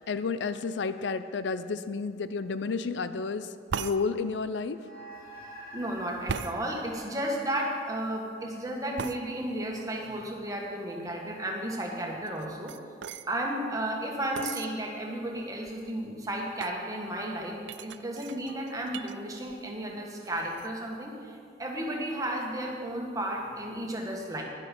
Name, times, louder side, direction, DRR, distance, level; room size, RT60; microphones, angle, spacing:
voice 1, 0.0-4.8, left 4 dB, 75° left, 12 dB, 0.5 m, -31 dB
sound 1, 3.7-4.0 6.3-6.6 9.0-9.2 12.3-13.3 14.4-14.7 15.4-15.5 15.7-16.1 16.6-16.8 17.7-19.2 19.5-19.9 20.2-20.7, right 6 dB, 80° right, 0.5 m, -37 dB
sound 2, 4.7-9.4, right 1 dB, 45° left, 2.5 m, -48 dB
voice 2, 5.7-12.7 13.3-24.4, right 1 dB, 20° right, -1 dB, 1.6 m, -33 dB
12.0 x 10.5 x 5.4 m, 2.3 s
head